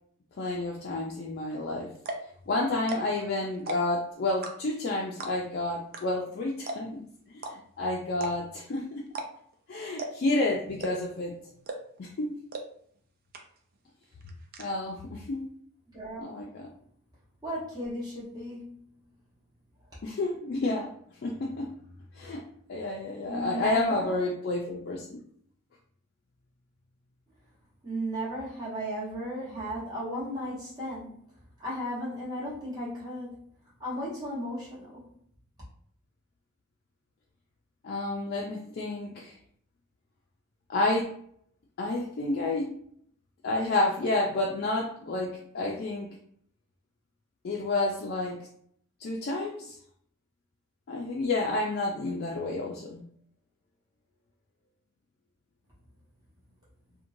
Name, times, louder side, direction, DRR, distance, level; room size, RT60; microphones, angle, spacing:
voice 1, 0.4-1.9 2.5-7.0 7.3-9.1 9.7-11.4 12.0-12.4 14.6-15.5 16.2-16.7 20.0-20.9 21.2-21.7 22.2-25.2 37.8-39.3 40.7-41.1 41.8-42.7 43.4-46.1 47.4-48.5 49.0-49.8 50.9-53.0, left 2 dB, 45° left, -1 dB, 0.3 m, -30 dB
sound 1, 1.5-1.6 2.0-2.3 2.8-3.2 3.5-4.0 4.4-4.8 5.2-5.5 5.9-6.0 6.3-6.4 6.7-7.0 7.4-7.5 8.1-8.6 9.1-9.5 10.0-10.3 10.8-11.2 11.7-12.0 12.5-12.6 13.0-13.1 13.3-13.8 14.0-14.6, right 2 dB, 40° right, 0.4 m, -36 dB
voice 2, 15.9-16.4 17.4-18.8 23.2-24.2 27.8-31.1 31.6-33.3 33.8-35.0, equal, 20° right, -8 dB, 1.1 m, -35 dB
3.0 x 2.1 x 2.6 m, 0.63 s
head